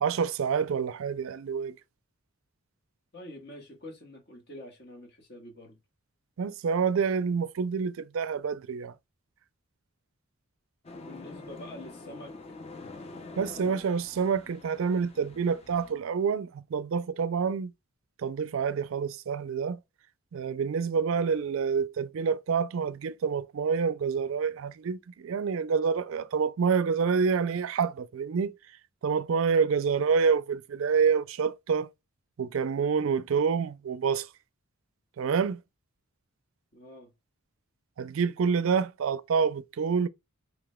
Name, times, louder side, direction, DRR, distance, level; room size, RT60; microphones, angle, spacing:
voice 1, 0.0-1.7 6.4-8.9 13.4-17.7 18.2-19.8 20.3-28.5 29.0-31.9 32.4-34.3 35.2-35.6 38.0-40.1, right 6 dB, 65° right, 0.4 m, -27 dB
voice 2, 3.1-5.8 10.9-12.3 36.7-37.1, left 1 dB, 50° left, 1.4 m, -46 dB
sound 1, 10.8-15.9, left 3 dB, 30° left, 0.5 m, -46 dB
4.9 x 3.2 x 2.2 m
head